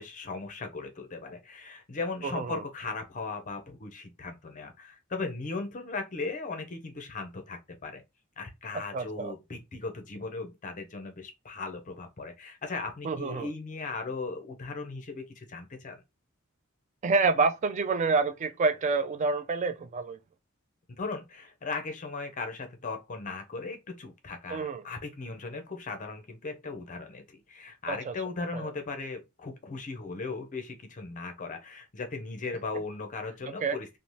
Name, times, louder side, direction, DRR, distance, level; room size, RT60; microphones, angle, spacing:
voice 1, 0.0-8.0 8.4-16.0 21.0-33.9, left 3 dB, 40° left, 0.5 m, -37 dB
voice 2, 2.2-2.6 8.9-9.3 13.0-13.5 17.0-20.2 24.5-24.8 27.9-28.1 28.5-28.7 33.6-33.8, right 4 dB, 35° right, 0.3 m, -28 dB
2.7 x 2.0 x 3.0 m
head